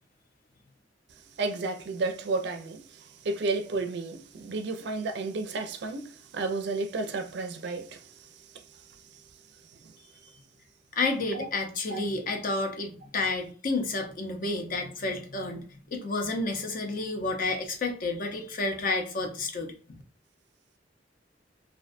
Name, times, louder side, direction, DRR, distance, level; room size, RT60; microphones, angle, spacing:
voice 1, 1.4-2.8 3.2-8.0 11.3-11.5 11.9-12.0, right 3 dB, 65° right, 0.4 m, -32 dB
voice 2, 10.9-19.7, left 3 dB, 50° left, 0.5 m, -30 dB
2.5 x 2.2 x 2.4 m
head